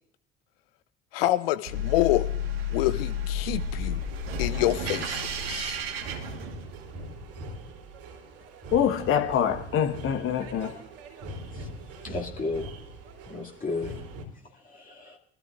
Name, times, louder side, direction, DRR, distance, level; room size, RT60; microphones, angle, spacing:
voice 1, 1.1-2.3 2.7-4.0 4.4-5.8, left 15 dB, 65° left, 0.8 m, -27 dB
sound 1, 1.7-7.0, left 3 dB, 70° right, 1.6 m, -31 dB
sound 2, 3.8-14.3, right 1 dB, 50° right, 2.9 m, -42 dB
voice 2, 8.7-10.7, left 8 dB, 45° left, 1.3 m, -25 dB
voice 3, 12.0-12.6 13.3-14.0 14.6-15.2, left 3 dB, 25° left, 2.4 m, -33 dB
23.5 x 13.0 x 2.5 m
figure-of-eight pair, 60°, 31 cm